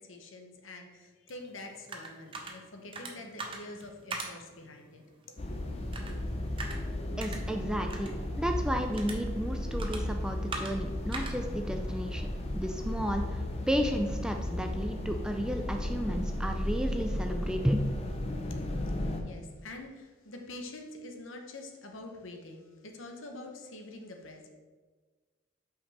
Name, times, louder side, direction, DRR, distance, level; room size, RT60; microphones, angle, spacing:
voice 1, 0.0-5.0 18.8-19.0 19.2-24.5, left 2 dB, 75° left, 3 dB, 0.9 m, -46 dB
sound 1, 1.3-12.9, right 3 dB, 25° right, 0.7 m, -45 dB
sound 2, 5.4-19.2, left 1 dB, 30° left, 0.6 m, -34 dB
voice 2, 7.2-17.9, equal, 5° right, 4 dB, 0.3 m, -33 dB
5.8 x 5.1 x 4.2 m, 1.4 s
head